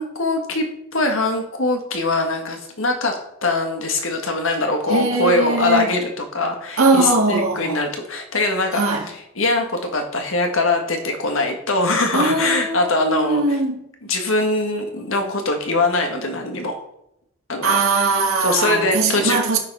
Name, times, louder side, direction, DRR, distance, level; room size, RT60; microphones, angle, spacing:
voice 1, 0.0-13.6 14.0-16.8 17.5-17.7 18.4-19.4, left 2 dB, 75° left, 1.7 m, -22 dB
voice 2, 4.9-5.8 6.8-7.8 8.7-9.1 12.1-13.8 17.6-19.6, right 3 dB, 85° right, 2.0 m, -20 dB
9.1 x 5.9 x 5.5 m
head